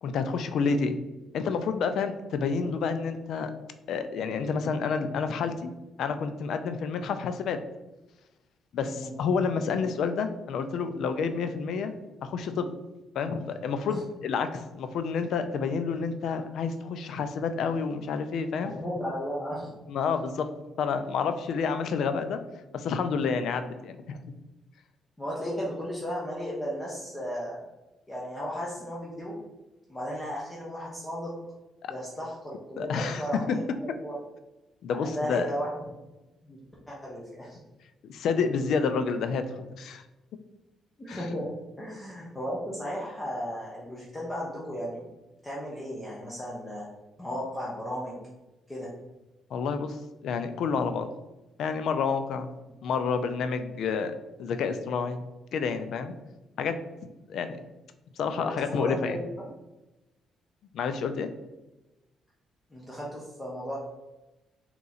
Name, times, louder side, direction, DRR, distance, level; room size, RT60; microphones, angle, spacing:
voice 1, 0.0-1.0 1.3-3.5 3.9-5.7 6.0-7.6 8.7-11.9 12.2-12.7 13.1-18.7 19.9-20.5 20.8-22.4 22.7-24.3 31.8-31.9 32.8-33.6 34.8-35.5 38.0-40.0 41.1-41.3 49.5-51.1 51.6-52.5 52.8-55.2 55.5-56.1 56.6-56.8 57.3-57.6 58.2-59.2 60.7-61.3, left 5 dB, 75° left, 9 dB, 0.4 m, -29 dB
voice 2, 18.6-19.7 25.2-27.6 28.1-29.4 29.9-31.3 31.9-34.2 35.0-35.7 36.3-36.6 36.9-37.6 41.0-41.5 41.8-45.1 45.4-46.9 47.2-48.2 48.7-48.9 58.4-59.5 62.7-63.8, equal, 15° left, -5 dB, 1.0 m, -35 dB
3.7 x 3.0 x 3.9 m, 1.0 s
cardioid pair, 90°, 0 cm